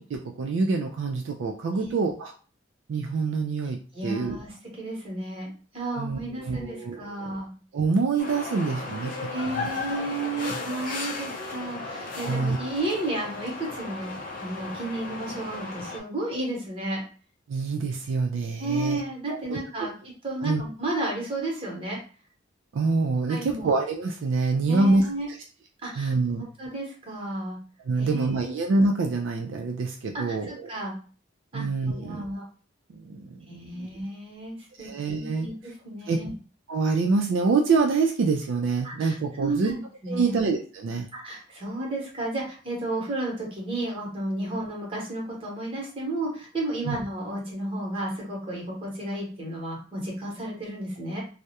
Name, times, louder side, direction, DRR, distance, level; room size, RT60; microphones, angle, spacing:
voice 1, 0.0-2.3 2.9-4.4 6.0-7.3 7.7-9.7 12.2-12.6 17.5-19.0 19.3-19.9 20.4-20.6 22.7-25.4 26.0-26.4 27.9-30.5 31.5-32.2 32.9-33.9 34.8-35.5 36.1-36.2 36.7-39.7 40.1-41.1 46.9-47.0, right 3 dB, 70° right, 3 dB, 0.3 m, -26 dB
voice 2, 3.9-7.5 9.3-14.1 14.4-17.0 18.6-19.9 20.2-22.0 23.3-23.7 24.7-25.3 25.8-26.1 26.6-27.6 28.0-28.4 30.3-30.9 31.5-32.4 33.5-36.3 38.8-40.4 41.1-51.2, right 2 dB, 30° right, -3 dB, 0.9 m, -32 dB
sound 1, 8.2-16.0, left 3 dB, 45° left, 0.5 m, -35 dB
2.3 x 2.0 x 2.8 m, 0.38 s
head